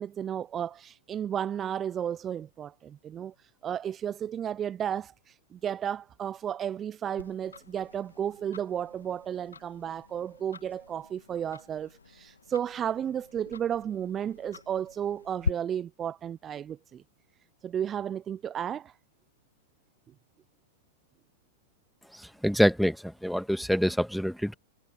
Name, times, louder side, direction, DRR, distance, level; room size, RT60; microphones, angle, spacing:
voice 1, 0.0-17.0 17.6-18.9, right 9 dB, 25° right, 0.5 m, -33 dB
Tick-tock, 7.2-15.5, left 5 dB, 90° left, 1.7 m, -42 dB
voice 2, 22.1-24.5, equal, ahead, 1.7 m, -26 dB
hypercardioid pair, 100°, 0 cm